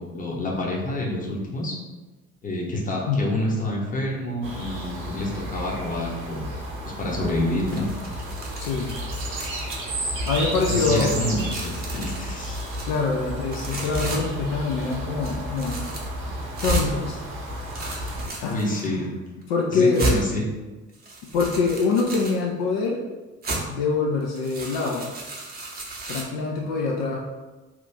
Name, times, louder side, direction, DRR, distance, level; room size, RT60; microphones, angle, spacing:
voice 1, 0.0-1.7 2.4-6.5 7.0-7.9 10.7-12.6 18.4-19.1 19.7-20.5, left 1 dB, 20° left, -3 dB, 0.9 m, -28 dB
sound 1, 4.4-18.3, equal, 50° right, 0.9 m, -33 dB
sound 2, 7.7-9.9 10.2-13.0 13.5-14.2 14.7-14.9 15.2-16.1 16.6-16.9 17.5-18.8 19.4-19.5 19.9-20.2 20.9-22.4 23.4-23.6 24.2-26.2, right 2 dB, 25° right, 0.7 m, -33 dB
voice 2, 8.6-9.0 10.3-11.1 12.8-15.7 16.6-17.2 18.4-19.0 19.5-20.1 21.3-23.0 23.7-25.1 26.1-27.2, left 4 dB, 60° left, -1 dB, 0.5 m, -24 dB
2.9 x 2.4 x 3.4 m, 1.2 s
figure-of-eight pair, 50°, 40 cm